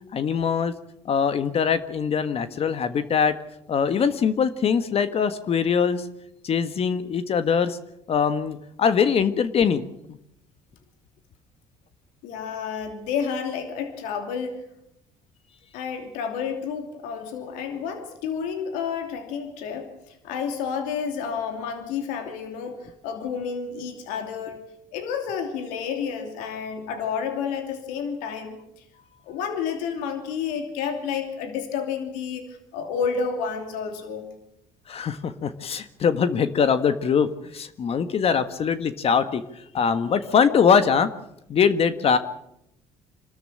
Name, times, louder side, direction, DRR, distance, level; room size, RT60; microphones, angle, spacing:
voice 1, 0.1-0.7 1.0-3.3 3.7-6.1 6.4-7.8 8.1-10.2 34.9-41.1 41.5-42.2, left 6 dB, 50° left, 11 dB, 1.5 m, -22 dB
voice 2, 12.2-14.6 15.7-24.6 24.9-28.6 29.3-34.3, left 6 dB, 85° left, 6 dB, 2.9 m, -30 dB
26.5 x 13.0 x 8.8 m, 0.82 s
supercardioid pair, 75°, 13 cm